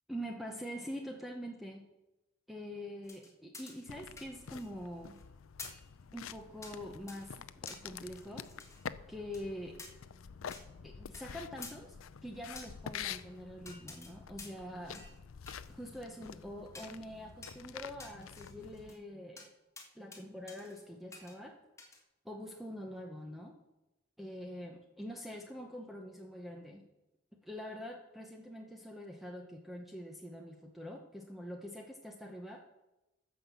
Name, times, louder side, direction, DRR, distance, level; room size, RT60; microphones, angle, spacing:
voice 1, 0.1-1.9 2.5-5.2 6.1-8.5 9.1-9.8 10.8-12.0 12.2-15.0 15.7-19.5 19.9-21.6 22.2-23.6 24.2-26.9 27.4-32.6, equal, ahead, 1 dB, 0.9 m, -45 dB
sound 1, 3.0-4.8 5.1-5.2 5.6-5.9 6.6-6.8 7.1-7.3 7.7-8.8 9.3-9.4 9.8-9.9 10.5-10.6 11.1-11.2 11.6-11.8 12.6-13.2 13.7-14.1 14.4-14.7 14.9-15.2 15.5-16.3 16.7-17.0 17.4-17.6 18.0-19.0 19.4-19.5 19.8-20.2 20.5-20.8 21.1-21.4 21.8-22.0, left 3 dB, 15° left, 1.6 m, -50 dB
sound 2, 3.9-18.9, left 7 dB, 85° left, 0.5 m, -48 dB
14.5 x 5.8 x 7.0 m, 1.0 s
head